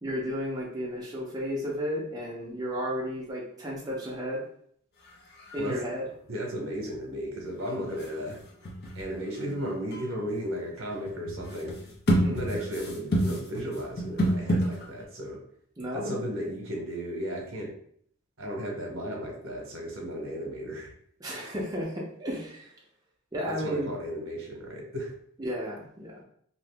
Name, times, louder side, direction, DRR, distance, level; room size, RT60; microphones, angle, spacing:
voice 1, 0.0-4.4 5.5-6.0 12.1-12.5 15.8-16.1 21.2-22.7 23.3-23.9 25.4-26.2, equal, 20° right, -5 dB, 0.6 m, -33 dB
sound 1, 5.1-5.2 5.3-5.8 7.7-15.0, equal, 50° left, 0.7 m, -30 dB
voice 2, 6.3-8.4 8.9-11.8 12.3-15.4 15.9-17.7 18.4-20.9 23.5-25.1, equal, 70° right, 0 dB, 0.9 m, -34 dB
2.8 x 2.5 x 3.3 m, 0.64 s
head